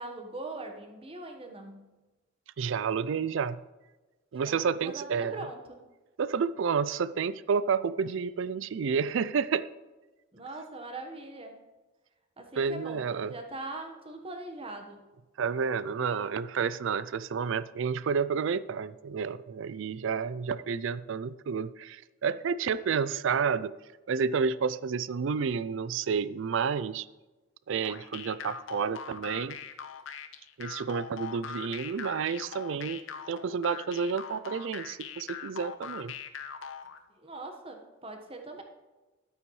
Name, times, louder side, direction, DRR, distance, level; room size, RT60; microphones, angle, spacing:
voice 1, 0.0-1.9 4.4-5.8 10.3-11.6 12.4-15.0 37.2-38.6, right 2 dB, 25° right, 4 dB, 1.2 m, -41 dB
voice 2, 2.6-3.6 4.3-5.5 6.2-9.7 12.6-13.3 15.4-23.7 24.1-27.1 27.7-29.6 30.6-36.1, right 6 dB, 65° right, 17 dB, 0.4 m, -30 dB
sound 1, 27.8-37.0, left 7 dB, 70° left, 0.8 m, -41 dB
12.0 x 8.8 x 3.2 m, 1.2 s
head